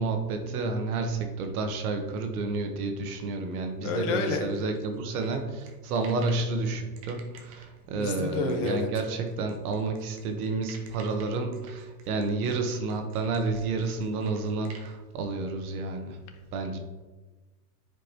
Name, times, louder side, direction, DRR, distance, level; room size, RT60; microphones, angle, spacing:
voice 1, 0.0-16.2 16.5-16.8, right 3 dB, 60° right, 6 dB, 1.1 m, -30 dB
voice 2, 3.8-4.5 8.0-8.9, left 4 dB, 45° left, 5 dB, 1.0 m, -29 dB
sound 1, 4.3-6.5 7.0-14.9, right 5 dB, 25° right, 0.3 m, -52 dB
9.6 x 5.1 x 2.9 m, 1.2 s
supercardioid pair, 160°, 49 cm